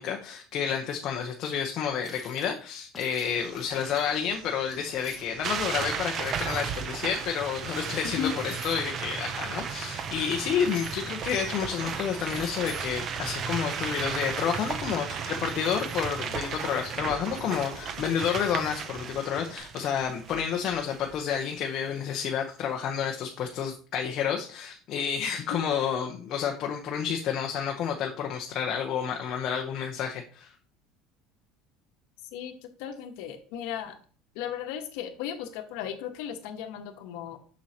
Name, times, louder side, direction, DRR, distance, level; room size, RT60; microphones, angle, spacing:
voice 1, 0.0-30.5, left 7 dB, 40° left, 2 dB, 0.8 m, -30 dB
sound 1, 2.0-2.6 2.9-4.2 4.7-5.4 5.9-6.8 7.6-9.0 9.3-11.0 11.4-13.1 13.6-15.0 15.4-19.1, left 3 dB, 15° left, 1.4 m, -49 dB
sound 2, 3.3-19.6, right 3 dB, 75° right, 2.4 m, -50 dB
sound 3, 5.4-21.4, right 7 dB, 35° right, 0.5 m, -35 dB
voice 2, 8.0-8.3 32.3-34.0 34.3-37.4, left 9 dB, 75° left, 6 dB, 1.1 m, -36 dB
7.3 x 6.2 x 2.9 m, 0.40 s
cardioid pair, 160°, 0 cm